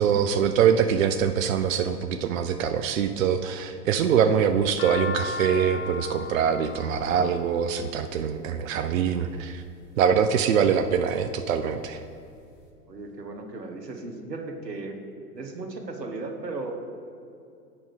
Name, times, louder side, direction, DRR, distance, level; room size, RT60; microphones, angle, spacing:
voice 1, 0.0-9.6 10.0-12.0, right 7 dB, 55° right, 9 dB, 0.5 m, -23 dB
sound 1, 4.3-8.6 9.4-9.9 10.5-11.1 11.5-11.6 11.7-12.6, left 4 dB, 40° left, 1.3 m, -36 dB
voice 2, 12.9-15.0 15.3-16.7, right 3 dB, 85° right, 5 dB, 1.1 m, -36 dB
8.7 x 5.1 x 4.8 m, 2.5 s
figure-of-eight pair, 100°, 48 cm